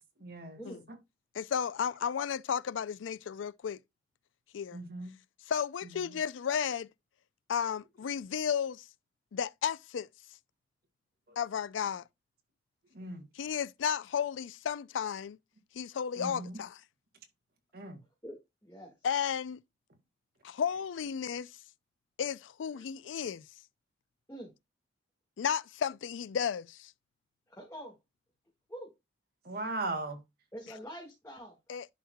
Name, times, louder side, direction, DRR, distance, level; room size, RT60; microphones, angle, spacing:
voice 1, 0.2-0.6 4.7-5.1 11.3-11.4 12.9-13.2 16.2-16.6 17.7-18.0 22.7-22.9 29.4-30.2, right 2 dB, 55° right, 1.9 m, -38 dB
voice 2, 1.3-3.8 4.5-4.8 5.5-6.9 7.5-8.8 9.3-10.1 11.4-12.0 13.3-15.4 15.7-16.8 19.0-19.6 20.4-21.5 22.2-23.4 25.4-26.9 31.7-31.9, left 7 dB, 90° left, 0.4 m, -33 dB
voice 3, 18.2-18.9 24.3-24.5 27.5-27.9 28.7-28.9 30.5-31.6, equal, 15° left, 1.7 m, -45 dB
11.0 x 4.7 x 2.3 m
head